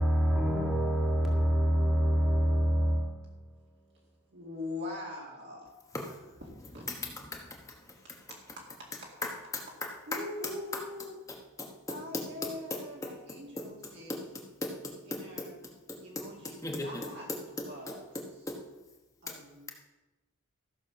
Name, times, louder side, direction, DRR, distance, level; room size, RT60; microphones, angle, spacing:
voice 1, 0.0-3.4, equal, 5° right, 1.8 m, -26 dB
voice 2, 4.3-5.7 6.7-6.8 8.3-8.9 10.1-14.2 15.0-15.5 16.0-18.1 19.2-19.7, left 2 dB, 55° right, 2.3 m, -43 dB
voice 3, 6.8-8.2 9.2-9.6 10.1-10.2 10.7-10.8 11.3-13.1 13.6-13.7 14.1-15.5 15.9-18.6 19.3-19.4, left 2 dB, 15° left, 1.2 m, -39 dB
14.5 x 6.5 x 6.3 m
head